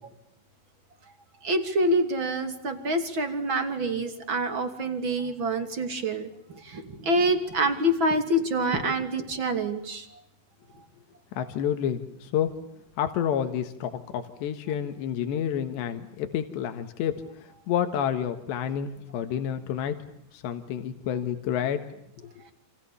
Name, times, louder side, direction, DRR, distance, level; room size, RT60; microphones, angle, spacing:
voice 1, 1.4-10.2 22.4-22.5, right 1 dB, 30° right, 7 dB, 3.0 m, -26 dB
voice 2, 11.4-12.6 13.0-20.0 20.3-21.8 22.4-22.5, left 9 dB, 90° left, 7 dB, 3.7 m, -29 dB
29.0 x 28.0 x 7.1 m, 0.78 s
omnidirectional pair, 4.9 m